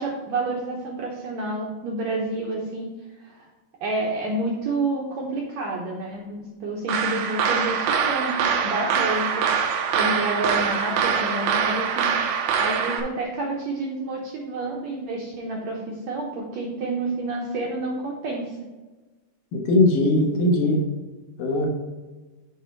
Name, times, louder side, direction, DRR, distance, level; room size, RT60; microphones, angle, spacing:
voice 1, 0.0-2.9 3.2-3.5 3.8-9.5 9.9-12.1 12.5-18.6, right 2 dB, 70° right, -2 dB, 1.7 m, -29 dB
sound 1, 6.9-13.0, right 7 dB, 85° right, 2.7 m, -24 dB
voice 2, 19.5-20.8 21.4-21.7, left 1 dB, 70° left, 0 dB, 2.9 m, -20 dB
9.9 x 3.7 x 4.5 m, 1.2 s
omnidirectional pair, 4.2 m